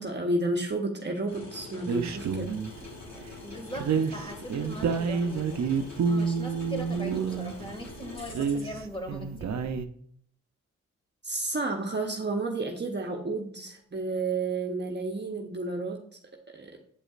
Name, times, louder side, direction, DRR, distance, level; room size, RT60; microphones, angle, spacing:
voice 1, 0.0-2.5 11.2-16.0 16.5-16.7, right 2 dB, 35° right, 2 dB, 1.0 m, -31 dB
sound 1, 1.3-8.8, left 3 dB, 60° left, 2.2 m, -44 dB
sound 2, 1.9-2.8 3.7-7.7 8.2-9.9, right 6 dB, 65° right, 0.6 m, -29 dB
voice 2, 3.4-9.5, equal, 15° left, 2 dB, 2.1 m, -40 dB
8.3 x 5.0 x 2.5 m, 0.63 s
cardioid pair, 50°, 30 cm